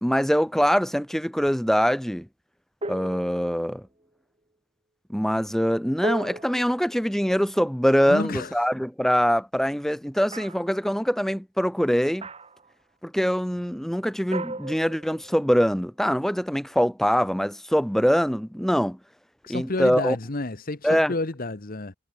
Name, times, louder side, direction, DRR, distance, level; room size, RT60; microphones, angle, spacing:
voice 1, 0.0-2.3 2.8-3.8 5.1-12.3 13.0-19.0 19.5-20.2 20.8-21.1, equal, ahead, 1.9 m, -23 dB
sound 1, 2.8-3.8 6.0-7.8 10.3-10.8 12.2-12.7 14.3-15.6, right 2 dB, 30° right, 2.6 m, -36 dB
voice 2, 8.1-8.5 19.4-21.9, left 2 dB, 45° left, 1.2 m, -30 dB
head